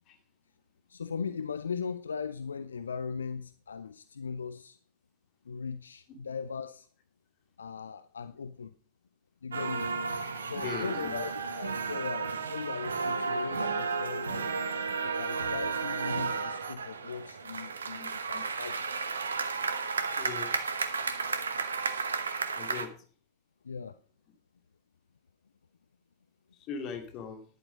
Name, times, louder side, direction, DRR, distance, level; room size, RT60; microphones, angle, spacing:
voice 1, 0.9-4.8 5.4-6.9 7.6-8.8 9.4-9.9 10.5-14.6 15.0-18.9 23.6-24.0, left 6 dB, 70° left, 0.4 m, -38 dB
sound 1, 9.5-22.9, right 5 dB, 70° right, 1.0 m, -33 dB
voice 2, 10.6-11.2 18.0-18.4 20.2-20.5 22.5-22.9 26.6-27.4, left 6 dB, 35° left, 2.3 m, -40 dB
11.0 x 9.2 x 5.0 m
figure-of-eight pair, 90°, 0 cm